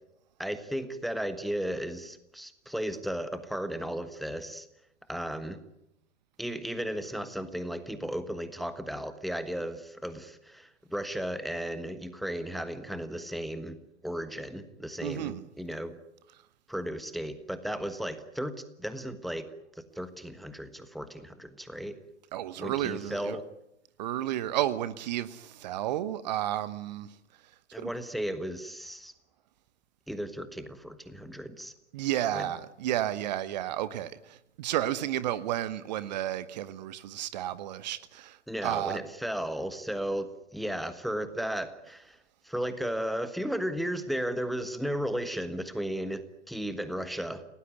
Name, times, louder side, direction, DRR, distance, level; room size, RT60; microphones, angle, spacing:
voice 1, 0.4-4.7 5.1-5.6 6.4-13.8 14.0-16.0 16.7-19.4 19.9-21.9 22.6-23.4 27.7-29.1 30.1-31.7 32.3-32.5 38.5-42.2 42.4-47.4, equal, ahead, 1.3 m, -35 dB
voice 2, 15.0-15.4 22.3-23.4 24.0-27.1 27.8-27.9 31.9-38.4 38.6-39.0, right 12 dB, 40° right, 1.1 m, -32 dB
29.0 x 18.0 x 9.4 m
figure-of-eight pair, 110°, 35 cm